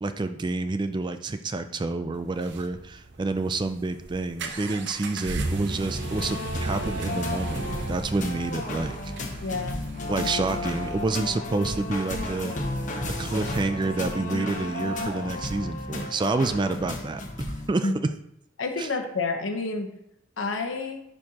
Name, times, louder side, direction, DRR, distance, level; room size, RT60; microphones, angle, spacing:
voice 1, 0.0-9.1 10.1-12.6 13.2-17.9 18.8-18.9, right 3 dB, 25° right, 9 dB, 0.4 m, -28 dB
sound 1, 2.2-16.0, right 2 dB, 65° right, 0.7 m, -36 dB
sound 2, 5.8-17.7, left 2 dB, 40° left, 1.0 m, -33 dB
voice 2, 9.4-9.8 17.8-17.9 18.6-19.9 20.4-21.0, left 3 dB, 85° left, 5 dB, 1.0 m, -29 dB
11.0 x 4.4 x 2.9 m, 0.79 s
head